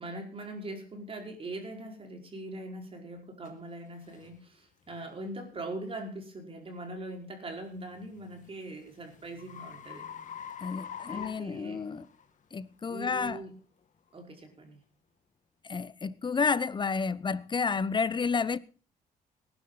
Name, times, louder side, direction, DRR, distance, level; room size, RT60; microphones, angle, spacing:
voice 1, 0.0-10.1 11.1-11.8 12.9-13.5 14.1-14.8, right 1 dB, 35° right, 5.0 m, -41 dB
sound 1, 3.5-3.6 4.1-4.3 4.9-5.1 7.8-12.3, left 8 dB, 55° left, 2.3 m, -44 dB
voice 2, 10.6-12.0 12.5-13.4 15.7-18.6, left 5 dB, 30° left, 0.8 m, -30 dB
19.0 x 11.5 x 4.0 m
cardioid pair, 95°, 16 cm